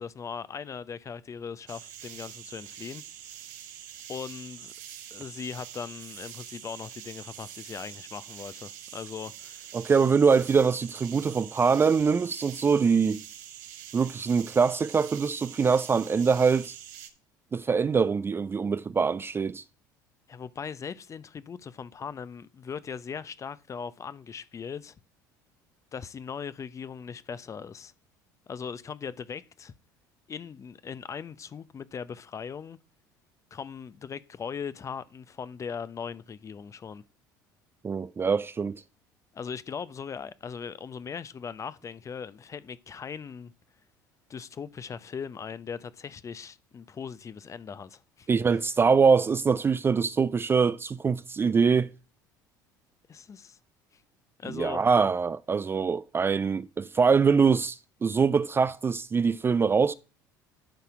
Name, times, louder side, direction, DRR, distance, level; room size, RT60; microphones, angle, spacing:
voice 1, 0.0-3.0 4.1-4.7 5.1-9.7 20.3-25.0 25.9-27.9 28.5-29.7 30.3-32.8 33.5-37.0 39.3-43.5 44.3-48.3 53.1-53.6 54.4-54.8, left 6 dB, 30° left, 0.6 m, -39 dB
sound 1, 1.7-17.1, right 10 dB, 70° right, 1.0 m, -45 dB
voice 2, 9.7-13.2 13.9-16.7 17.5-19.6 37.8-38.8 48.3-51.9 54.5-59.9, right 5 dB, 25° right, 0.4 m, -23 dB
10.5 x 4.2 x 4.8 m
hypercardioid pair, 65°, 10 cm